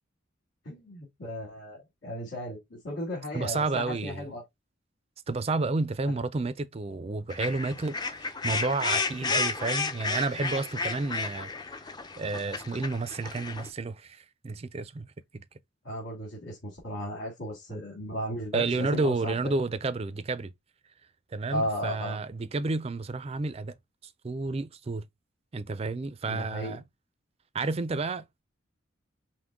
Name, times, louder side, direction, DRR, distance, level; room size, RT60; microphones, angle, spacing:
voice 1, 0.6-4.4 6.1-6.2 15.8-19.5 21.5-22.2 26.3-26.8, equal, 80° left, 2.3 m, -35 dB
voice 2, 3.3-4.3 5.3-11.5 12.2-15.1 15.3-15.4 17.7-17.8 18.5-20.5 21.3-23.7 24.2-25.1 25.5-26.8 27.5-28.4, right 3 dB, 30° right, 0.4 m, -31 dB
sound 1, 7.3-13.7, left 4 dB, 20° left, 0.5 m, -32 dB
5.8 x 2.1 x 3.6 m
head